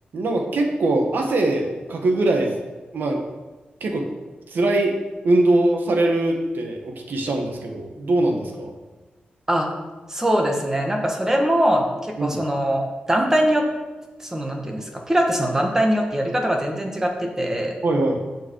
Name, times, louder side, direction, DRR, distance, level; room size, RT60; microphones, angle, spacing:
voice 1, 0.1-2.6 2.9-3.2 3.8-4.0 4.5-4.9 5.2-8.7 12.2-12.4 17.8-18.2, right 2 dB, 80° right, 2 dB, 1.8 m, -22 dB
voice 2, 10.1-12.8 13.1-13.7 14.2-17.7, equal, 15° right, 1 dB, 1.7 m, -22 dB
15.0 x 5.7 x 4.9 m, 1.2 s
wide cardioid pair, 130°, 3 cm